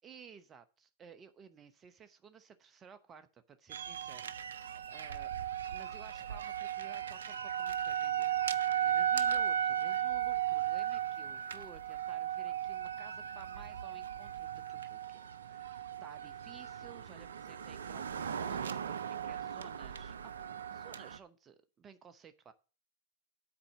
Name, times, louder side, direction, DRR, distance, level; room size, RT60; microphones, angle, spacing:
voice 1, 0.0-5.3 5.7-8.3 8.6-22.5, right 7 dB, 25° right, 11 dB, 1.0 m, -56 dB
sound 1, 3.7-21.2, right 9 dB, 75° right, 0.5 m, -36 dB
9.8 x 4.3 x 7.6 m, 0.37 s
hypercardioid pair, 100°, 0 cm